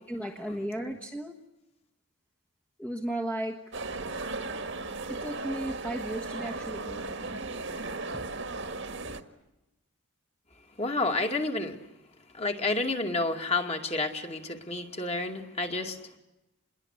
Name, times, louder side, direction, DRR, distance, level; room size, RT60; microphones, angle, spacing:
voice 1, 0.1-1.4 2.8-3.6 5.1-7.4, right 1 dB, 5° left, 2 dB, 1.3 m, -35 dB
sound 1, 3.7-9.2, right 3 dB, 60° right, 1.8 m, -36 dB
voice 2, 10.8-11.8 12.3-16.0, left 2 dB, 30° left, 4 dB, 2.4 m, -30 dB
28.0 x 22.0 x 8.3 m, 0.96 s
head